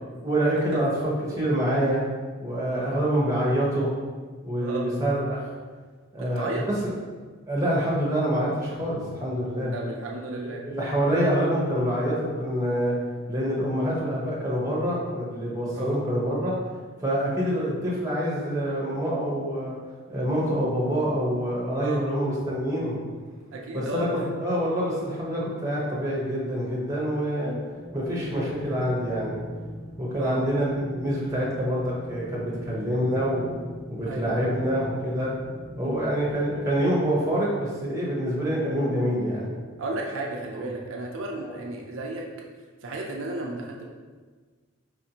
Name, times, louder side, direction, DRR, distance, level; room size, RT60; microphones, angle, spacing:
voice 1, 0.2-2.0 2.4-3.9 4.4-5.5 6.1-6.5 7.5-9.7 10.4-13.0 13.3-16.5 17.0-19.8 20.1-23.0 23.7-24.1 24.4-27.5 27.9-29.4 30.0-33.5 33.9-35.3 35.8-39.5 40.5-40.6 41.3-41.5, equal, 15° right, -6 dB, 0.7 m, -26 dB
voice 2, 4.6-4.9 6.2-6.7 9.7-10.6 15.7-16.0 21.8-22.0 23.5-24.3 27.4-27.6 30.2-30.4 34.0-34.4 35.8-36.0 38.8-39.0 39.8-42.3 42.8-43.9, right 2 dB, 70° right, 0 dB, 0.4 m, -34 dB
sound 1, 27.7-37.0, equal, 20° left, 0.6 m, -42 dB
4.8 x 2.5 x 2.8 m, 1.4 s
head